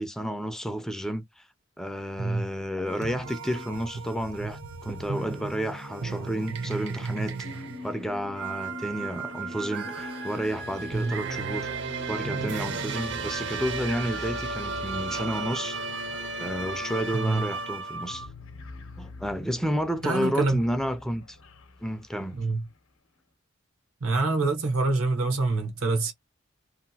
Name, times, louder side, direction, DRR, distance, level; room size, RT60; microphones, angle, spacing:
voice 1, 0.0-1.5 1.8-11.7 12.1-15.8 16.1-18.3 19.0-21.4 21.8-22.4 25.8-25.9, equal, ahead, 0.3 m, -31 dB
sound 1, 2.8-18.3, right 4 dB, 60° right, 0.6 m, -34 dB
sound 2, 7.4-22.6, left 2 dB, 70° left, 0.6 m, -44 dB
voice 2, 17.1-17.5 20.0-20.6 22.4-22.7 24.0-26.1, right 3 dB, 85° right, 0.9 m, -26 dB
2.8 x 2.4 x 2.7 m
head